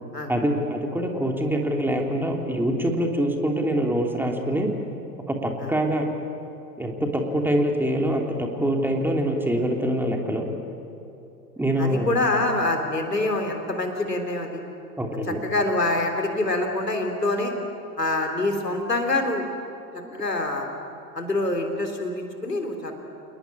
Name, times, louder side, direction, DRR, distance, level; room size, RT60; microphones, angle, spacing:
voice 1, 0.3-4.7 5.3-6.0 6.8-10.5 11.6-12.1 15.0-15.4 20.0-20.1, right 1 dB, 5° right, 2 dB, 3.1 m, -24 dB
voice 2, 11.8-14.6 15.3-17.5 18.0-19.5 20.1-20.7 21.1-22.9, left 2 dB, 85° left, 4 dB, 3.7 m, -25 dB
29.5 x 19.5 x 10.0 m, 2.8 s
figure-of-eight pair, 90°, 47 cm